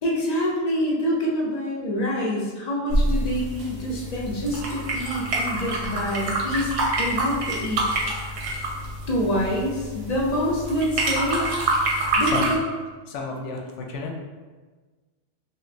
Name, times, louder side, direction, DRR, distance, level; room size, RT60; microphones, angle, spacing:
voice 1, 0.0-6.7 7.0-8.1 9.1-11.5 12.2-12.6, equal, 55° left, -3 dB, 0.4 m, -26 dB
sound 1, 2.9-12.6, right 2 dB, 85° right, 1.0 m, -27 dB
voice 2, 13.1-14.1, left 3 dB, 75° left, 0 dB, 0.9 m, -31 dB
3.0 x 2.8 x 2.5 m, 1.4 s
omnidirectional pair, 1.3 m